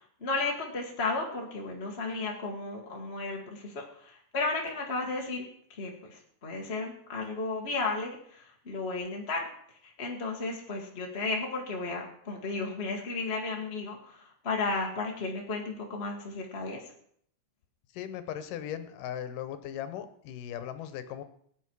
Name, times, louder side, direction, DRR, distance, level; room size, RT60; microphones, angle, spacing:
voice 1, 0.0-5.4 5.7-9.5 9.8-16.9, left 3 dB, 30° left, 0 dB, 1.2 m, -34 dB
voice 2, 17.9-21.2, left 10 dB, 80° left, 11 dB, 2.6 m, -38 dB
18.5 x 9.1 x 4.7 m, 0.64 s
omnidirectional pair, 3.8 m